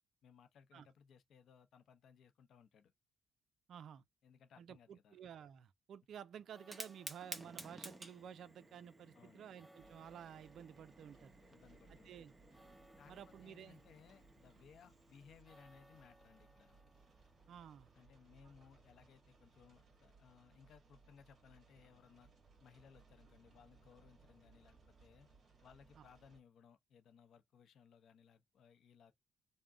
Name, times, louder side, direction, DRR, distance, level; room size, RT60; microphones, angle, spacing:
voice 1, 0.2-2.9 4.2-5.2 9.1-9.4 11.5-12.1 13.0-16.8 17.9-22.3 22.6-25.3 25.6-29.1, left 7 dB, 65° left, 0.7 m, -64 dB
voice 2, 3.7-4.0 4.6-11.3 12.0-12.3 13.1-13.8 17.5-17.9 26.0-26.1, right 9 dB, 65° right, 0.4 m, -53 dB
sound 1, 6.3-19.8, equal, ahead, 0.5 m, -68 dB
Fire, 6.5-15.4, right 2 dB, 15° right, 1.0 m, -55 dB
sound 2, 9.8-26.4, right 4 dB, 40° right, 1.8 m, -67 dB
3.5 x 2.1 x 3.7 m
cardioid pair, 90°, 0 cm